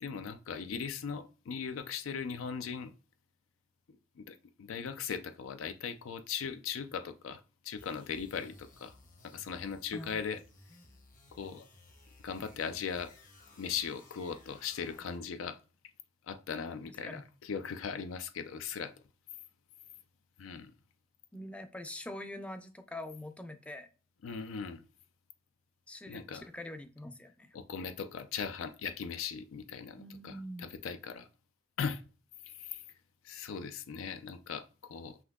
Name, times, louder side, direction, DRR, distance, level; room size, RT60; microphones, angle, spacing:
voice 1, 0.0-2.9 4.2-8.9 9.2-10.4 11.3-11.6 12.2-13.1 13.6-15.6 16.3-18.9 20.4-20.7 24.2-24.8 26.1-26.5 27.5-31.3 31.8-32.0 32.6-32.8 33.2-35.2, left 6 dB, 80° left, 0.4 m, -39 dB
sound 1, 7.8-15.4, left 2 dB, 40° left, 0.8 m, -58 dB
voice 2, 16.8-17.3 21.3-23.9 25.9-27.6 30.0-30.7, left 1 dB, 5° left, 0.4 m, -44 dB
5.8 x 2.6 x 2.3 m
head